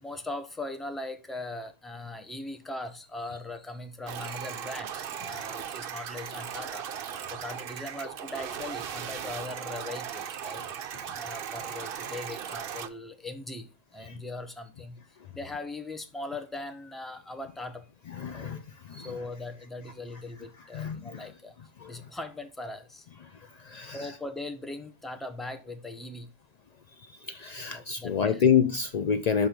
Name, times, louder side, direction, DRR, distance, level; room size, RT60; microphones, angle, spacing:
voice 1, 0.0-6.9 7.3-10.7 11.1-15.0 15.3-17.9 18.3-18.6 19.0-21.5 21.9-23.1 23.7-26.3 27.7-28.4, left 2 dB, ahead, 0.5 m, -40 dB
sound 1, 4.1-12.9, right 8 dB, 55° right, 0.7 m, -37 dB
voice 2, 18.2-18.6 18.9-19.1 20.7-21.2 21.8-21.9 23.6-24.0 27.3-29.5, left 7 dB, 90° left, 0.3 m, -27 dB
6.1 x 4.5 x 5.1 m
omnidirectional pair, 1.3 m